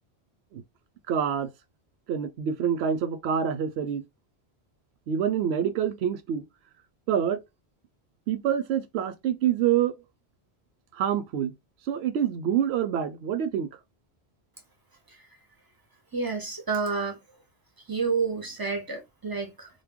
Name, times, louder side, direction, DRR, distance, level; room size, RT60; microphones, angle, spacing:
voice 1, 1.1-1.5 2.1-4.0 5.1-6.4 7.1-7.4 8.3-10.0 11.0-11.5 11.9-13.7, right 9 dB, 75° right, 0.8 m, -26 dB
voice 2, 16.1-17.2 17.9-19.7, right 4 dB, 30° right, 0.5 m, -29 dB
2.2 x 2.1 x 3.4 m
omnidirectional pair, 1.1 m